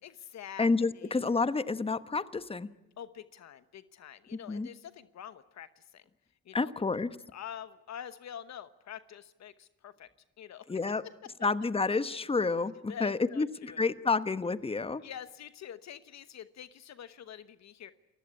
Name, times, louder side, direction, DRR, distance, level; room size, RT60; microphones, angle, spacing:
voice 1, 0.0-1.2 3.0-6.0 6.4-6.7 7.3-10.1 10.4-10.8 12.9-13.9 15.0-17.9, left 9 dB, 60° left, 14 dB, 1.1 m, -46 dB
voice 2, 0.6-2.7 4.3-4.7 6.5-7.2 10.7-11.0 11.4-15.0, left 4 dB, 20° left, 14 dB, 1.1 m, -29 dB
29.0 x 16.0 x 9.6 m, 0.98 s
cardioid pair, 90°, 30 cm